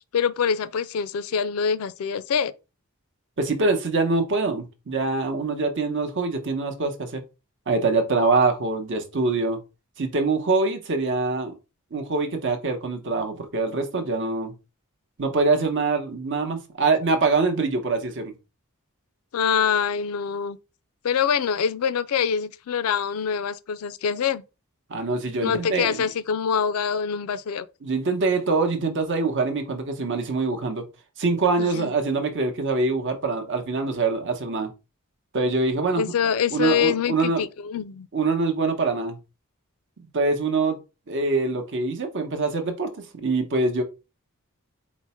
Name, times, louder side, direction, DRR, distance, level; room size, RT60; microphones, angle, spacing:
voice 1, 0.1-2.5 19.3-20.6 21.0-24.4 25.4-27.7 31.6-31.9 36.0-38.1, left 7 dB, 70° left, 0.4 m, -25 dB
voice 2, 3.4-7.2 7.7-9.6 10.0-11.5 11.9-14.5 15.2-18.3 24.9-26.0 27.8-30.9 31.2-34.7 35.3-36.1 36.5-37.4 38.1-39.2 40.1-40.8 41.1-43.8, right 3 dB, 55° right, 0.8 m, -24 dB
4.4 x 2.0 x 4.2 m
head